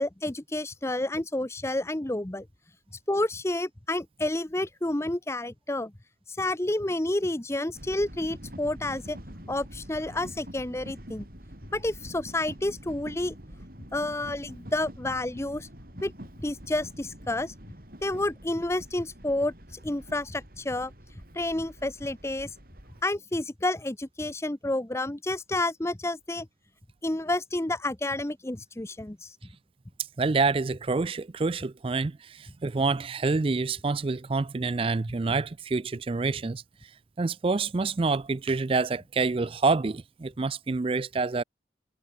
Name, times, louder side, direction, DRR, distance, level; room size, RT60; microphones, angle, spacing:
voice 1, 0.0-2.5 3.1-5.9 6.4-9.2 9.5-11.3 11.7-13.3 13.9-15.7 16.0-16.1 16.4-17.5 18.0-20.9 21.3-22.5 23.0-26.5 27.0-29.3, left 1 dB, 15° left, 0.7 m, -30 dB
sound 1, 7.7-23.0, equal, 50° right, 7.7 m, -46 dB
voice 2, 30.2-36.6 37.2-41.4, right 3 dB, 30° right, 0.4 m, -27 dB
head